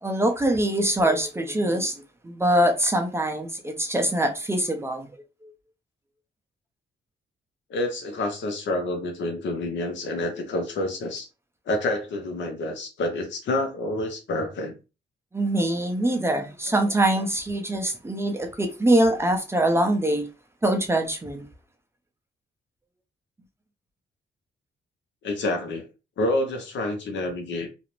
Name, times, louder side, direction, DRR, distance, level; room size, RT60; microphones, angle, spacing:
voice 1, 0.0-5.1 15.3-20.3 20.6-21.5, right 1 dB, 15° right, 0.5 m, -23 dB
voice 2, 7.7-11.3 11.7-14.7 25.2-25.9 26.2-27.7, left 2 dB, 75° left, 0.8 m, -28 dB
2.4 x 2.0 x 2.9 m
cardioid pair, 105°, 19 cm